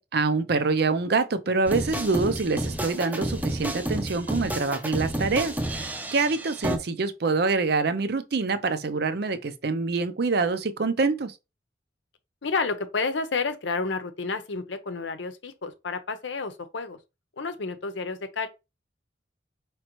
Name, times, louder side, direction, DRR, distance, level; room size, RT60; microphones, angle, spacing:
voice 1, 0.0-11.3, right 4 dB, 60° right, 0.5 m, -26 dB
sound 1, 1.7-6.8, right 1 dB, 10° right, 0.5 m, -30 dB
voice 2, 12.4-17.0 17.4-18.5, left 4 dB, 90° left, 0.7 m, -30 dB
5.1 x 3.1 x 3.0 m
head